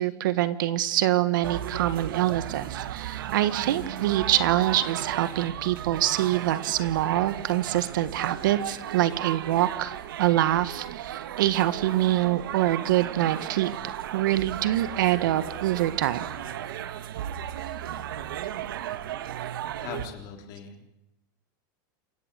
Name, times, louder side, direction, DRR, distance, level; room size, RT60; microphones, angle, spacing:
voice 1, 0.0-13.7 14.1-16.3, right 13 dB, 65° right, 14 dB, 1.6 m, -25 dB
sound 1, 1.4-20.1, right 11 dB, 80° right, 1.6 m, -35 dB
voice 2, 19.8-20.9, left 7 dB, 35° left, 4 dB, 3.5 m, -40 dB
28.0 x 15.5 x 8.4 m, 0.88 s
supercardioid pair, 175°, 11 cm